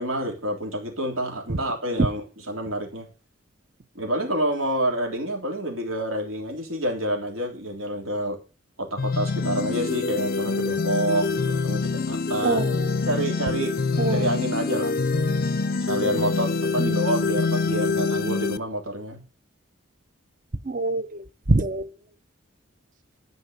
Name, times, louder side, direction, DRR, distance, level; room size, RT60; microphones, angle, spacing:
voice 1, 0.0-3.1 3.9-8.4 8.8-12.7 13.0-13.7 14.1-15.3 15.8-19.2, right 1 dB, 80° right, 3.3 m, -28 dB
sound 1, 9.0-18.6, left 4 dB, 45° left, 0.5 m, -25 dB
voice 2, 12.4-12.8 14.0-14.2 16.8-17.0 20.7-21.9, right 2 dB, 40° right, 0.7 m, -25 dB
12.0 x 5.4 x 7.9 m
head